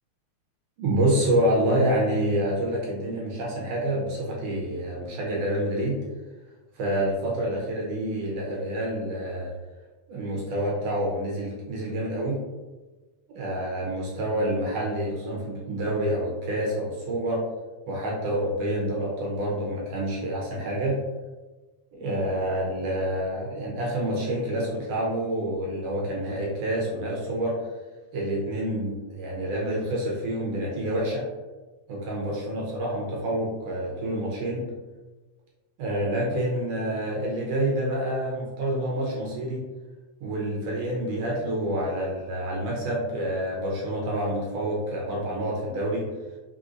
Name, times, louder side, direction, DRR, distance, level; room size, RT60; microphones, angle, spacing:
voice 1, 0.8-6.0 6.7-9.5 10.1-12.4 13.3-17.4 17.9-21.0 21.9-27.6 28.1-31.2 31.9-34.6 35.8-39.6 40.2-46.0, right 1 dB, 70° right, -3 dB, 1.6 m, -27 dB
5.1 x 3.4 x 2.5 m, 1.2 s
omnidirectional pair, 3.5 m